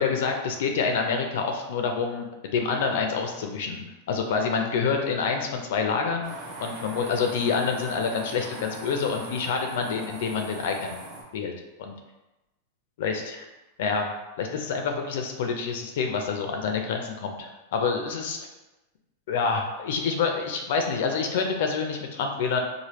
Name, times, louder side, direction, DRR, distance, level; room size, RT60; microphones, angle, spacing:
voice 1, 0.0-2.3 2.5-11.0 11.3-11.5 11.8-11.9 13.0-13.5 13.8-14.1 14.4-18.4 19.3-22.6, left 5 dB, 70° left, 3 dB, 0.4 m, -27 dB
sound 1, 6.2-11.2, right 2 dB, 50° right, 0.9 m, -41 dB
3.3 x 2.0 x 3.0 m, 1.0 s
hypercardioid pair, 115°, 0 cm